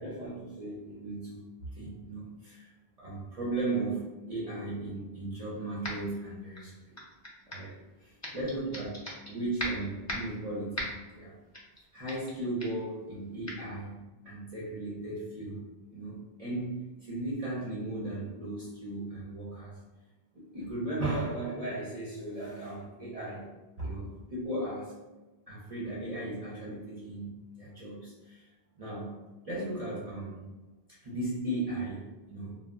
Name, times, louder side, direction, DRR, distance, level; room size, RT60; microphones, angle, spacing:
voice 1, 0.0-2.7 3.0-7.0 7.5-7.7 8.3-8.9 9.2-11.4 11.9-15.6 15.9-19.8 20.3-23.5 23.8-24.9 25.5-27.3 27.6-28.5 28.8-29.2 29.4-30.5 30.9-32.6, right 2 dB, 45° right, -8 dB, 0.6 m, -36 dB
sound 1, 5.8-6.2 6.5-7.7 8.2-9.3 9.6-10.4 10.8-11.1 11.5-11.8 12.1-12.3 12.6-12.8 13.5-13.6, left 1 dB, 25° left, 0.4 m, -38 dB
2.2 x 2.1 x 3.4 m, 1.1 s
omnidirectional pair, 1.1 m